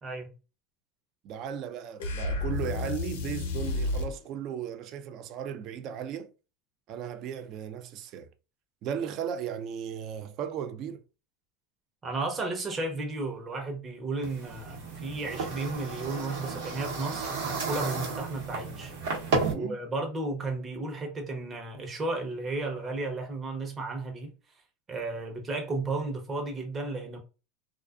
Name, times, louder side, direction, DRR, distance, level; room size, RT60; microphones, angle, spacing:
voice 1, 1.2-6.3 6.9-8.3 8.8-11.0 19.5-19.8, right 8 dB, 50° right, 0.4 m, -36 dB
sound 1, 2.0-4.2, left 3 dB, 85° left, 0.6 m, -31 dB
voice 2, 12.0-18.9 19.5-24.3 24.9-27.2, right 2 dB, 25° right, 0.7 m, -33 dB
sound 2, 14.2-19.5, right 4 dB, 75° right, 1.0 m, -33 dB
2.3 x 2.3 x 2.4 m
supercardioid pair, 115°, 0 cm